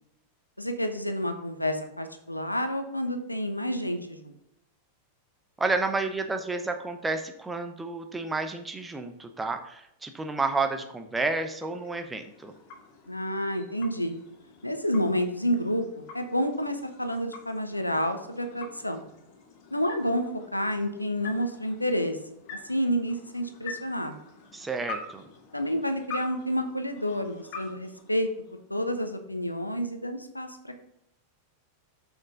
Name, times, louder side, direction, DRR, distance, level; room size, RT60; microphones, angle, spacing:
voice 1, 0.6-4.3 13.1-14.2 14.6-19.0 19.7-20.2 20.5-22.2 22.5-24.2 25.5-28.3 28.7-30.9, equal, 85° left, 7 dB, 0.8 m, -29 dB
voice 2, 5.6-12.5 24.5-25.2, right 3 dB, 10° right, 6 dB, 0.8 m, -30 dB
sound 1, 11.0-28.8, left 3 dB, 45° left, 2.2 m, -46 dB
6.4 x 6.4 x 3.7 m, 0.80 s
figure-of-eight pair, 90°, 0 cm